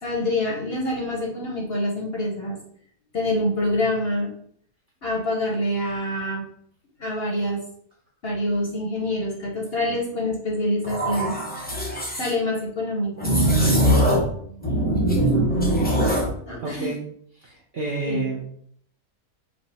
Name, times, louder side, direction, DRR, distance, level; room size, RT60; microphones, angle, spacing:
voice 1, 0.0-2.6 3.1-4.3 5.0-6.4 7.0-7.6 8.2-11.3 12.2-13.9 14.4-14.8 15.9-16.0 16.5-16.9 18.1-18.2, left 1 dB, 50° left, -2 dB, 0.8 m, -26 dB
sound 1, 10.8-12.3 13.2-14.3 14.6-16.3, right 1 dB, 10° left, 0.4 m, -21 dB
voice 2, 16.6-17.0 17.4-18.5, right 3 dB, 60° right, -2 dB, 0.6 m, -29 dB
4.6 x 2.0 x 4.0 m, 0.64 s
omnidirectional pair, 1.7 m